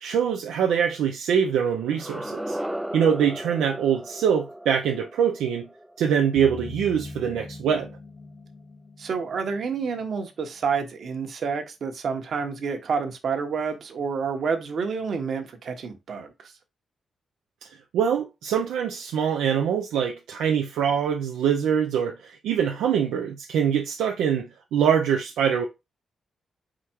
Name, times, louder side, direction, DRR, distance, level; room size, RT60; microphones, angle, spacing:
voice 1, 0.0-2.6 2.9-5.7 6.0-7.9 17.6-17.7 17.9-25.6, right 8 dB, 85° right, 0.5 m, -24 dB
sound 1, 1.9-6.8, right 1 dB, 5° right, 0.5 m, -36 dB
sound 2, 6.4-10.1, left 2 dB, 55° left, 0.6 m, -41 dB
voice 2, 9.0-16.5, right 5 dB, 65° right, 1.2 m, -29 dB
5.0 x 2.3 x 4.5 m
supercardioid pair, 55°, 0 cm